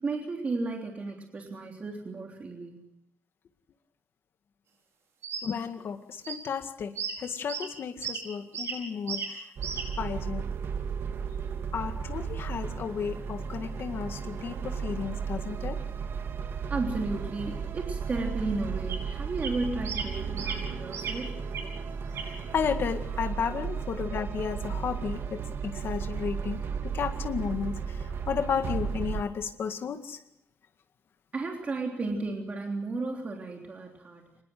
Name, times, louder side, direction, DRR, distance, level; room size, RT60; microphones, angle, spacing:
voice 1, 0.0-2.8 16.7-21.4 31.3-34.2, right 3 dB, 30° right, 1 dB, 3.4 m, -33 dB
sound 1, 5.2-5.4 6.2-6.4 7.0-7.1 7.5-7.7 8.0-8.2 8.5-8.8 9.1-9.3 9.6-9.9 18.9-19.0 19.4-19.5 19.8-20.1 20.4-20.6 20.9-21.1 21.5-21.6 22.1-22.6 23.0-23.2, right 6 dB, 80° right, 5.4 m, -35 dB
voice 2, 5.4-6.9 7.2-9.5 10.0-10.4 11.7-15.8 22.5-30.2, left 7 dB, 60° left, 6 dB, 1.9 m, -33 dB
sound 2, 9.6-29.2, right 6 dB, 60° right, 2.3 m, -34 dB
25.0 x 20.5 x 7.7 m, 0.74 s
wide cardioid pair, 175°, 5 cm